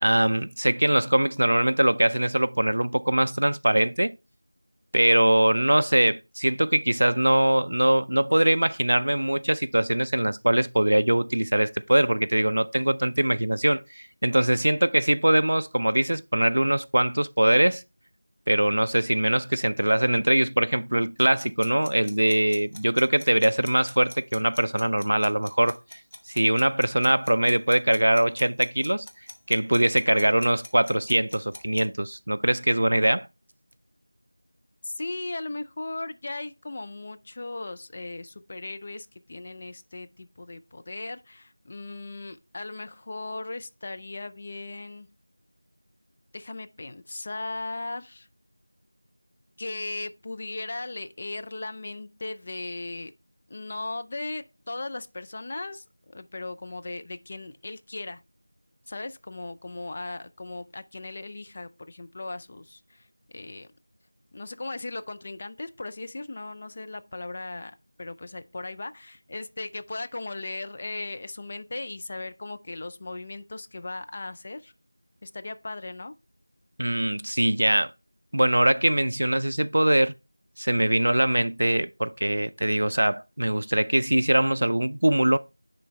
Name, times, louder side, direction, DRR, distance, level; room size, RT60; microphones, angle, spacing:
voice 1, 0.0-4.1 4.9-17.8 18.5-25.8 26.3-29.1 29.5-33.3 76.8-77.9 78.3-80.1 80.6-85.4, right 1 dB, 55° right, 0.4 m, -22 dB
sound 1, 21.4-31.8, left 1 dB, 40° left, 1.0 m, -43 dB
voice 2, 34.8-45.1 46.3-48.3 49.6-53.1 53.5-58.2 58.9-63.1 63.3-63.7 64.3-67.7 68.0-74.7 75.2-76.1, left 2 dB, 25° left, 0.3 m, -37 dB
9.9 x 3.9 x 3.2 m
figure-of-eight pair, 175°, 0 cm